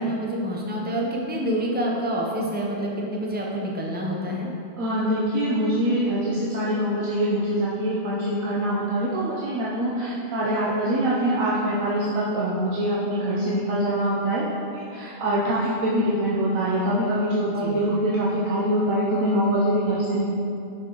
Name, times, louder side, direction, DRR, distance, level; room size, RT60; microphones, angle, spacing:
voice 1, 0.0-4.5 17.5-17.8, equal, 15° right, -2 dB, 0.4 m, -27 dB
voice 2, 4.8-14.4 14.7-20.3, right 1 dB, 85° right, -7 dB, 1.2 m, -24 dB
6.2 x 5.7 x 3.0 m, 2.6 s
omnidirectional pair, 1.4 m